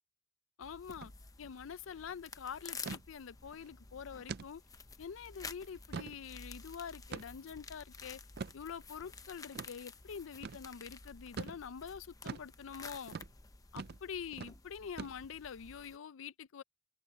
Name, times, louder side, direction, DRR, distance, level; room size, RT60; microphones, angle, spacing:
voice 1, 0.6-1.1 1.4-4.6 5.0-8.2 8.5-13.2 13.7-16.6, left 7 dB, 75° left, 0.5 m, -46 dB
sound 1, 0.6-16.0, left 4 dB, 20° left, 0.8 m, -52 dB
sound 2, 0.9-1.1 1.4-1.5 1.9-2.2 2.9-3.1 3.5-3.7 4.3-4.5 5.0-5.1 5.6-6.2 7.1-7.5 8.4-8.6 9.6-9.7 10.4-10.6 11.4-11.6 12.3-12.5 13.1-13.3 13.8-14.0 14.3-14.6 15.0-15.4, right 5 dB, 50° right, 0.4 m, -43 dB
sound 3, 4.5-10.8, left 2 dB, 45° left, 5.2 m, -75 dB
open air
head